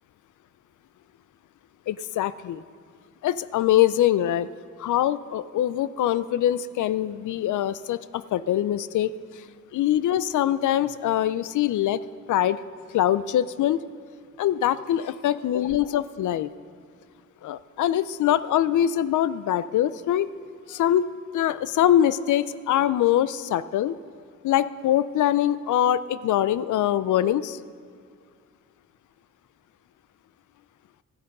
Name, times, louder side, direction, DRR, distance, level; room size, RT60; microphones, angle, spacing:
voice 1, 1.9-2.6 3.2-4.5 4.8-9.1 9.7-12.0 12.3-12.6 12.9-13.8 14.4-16.5 17.4-20.3 20.7-21.1 21.3-23.9 24.4-27.6, left 11 dB, 80° left, 16 dB, 0.5 m, -23 dB
13.5 x 9.1 x 5.3 m, 2.2 s
cardioid pair, 105°, 30 cm